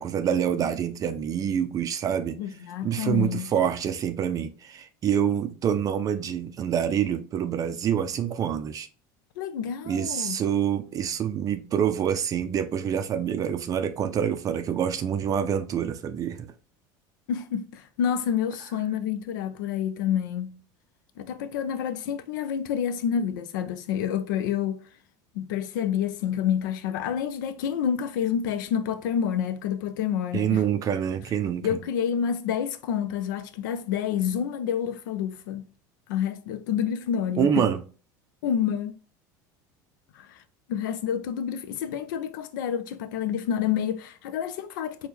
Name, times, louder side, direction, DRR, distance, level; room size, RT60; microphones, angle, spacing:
voice 1, 0.0-2.4 2.8-8.9 9.9-16.5 30.3-31.8 37.4-37.8, right 8 dB, 35° right, 0.4 m, -26 dB
voice 2, 2.4-3.5 9.4-10.4 17.3-20.6 21.2-24.8 25.3-30.6 31.6-35.7 36.1-37.6 38.4-39.0 40.1-40.4 40.7-45.1, left 8 dB, 85° left, 0.5 m, -28 dB
4.3 x 2.2 x 3.3 m
supercardioid pair, 110°, 10 cm